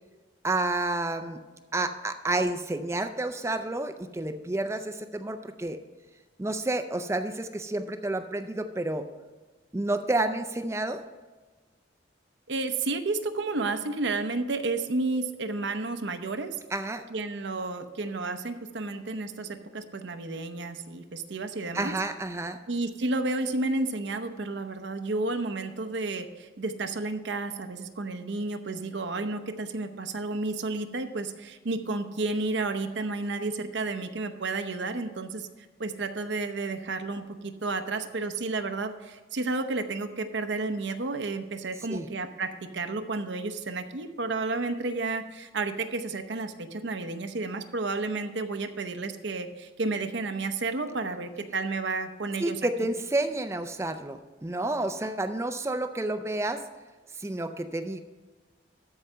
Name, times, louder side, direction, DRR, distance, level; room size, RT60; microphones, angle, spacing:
voice 1, 0.4-1.4 1.7-5.8 6.4-9.1 9.7-11.0 16.7-17.0 21.7-22.6 41.9-42.1 52.4-56.6 57.2-58.0, right 2 dB, 15° right, 9 dB, 0.4 m, -30 dB
voice 2, 12.5-16.5 17.1-22.0 22.7-35.5 35.8-52.6, right 3 dB, 75° right, 8 dB, 0.8 m, -31 dB
13.0 x 4.8 x 5.5 m, 1.3 s
head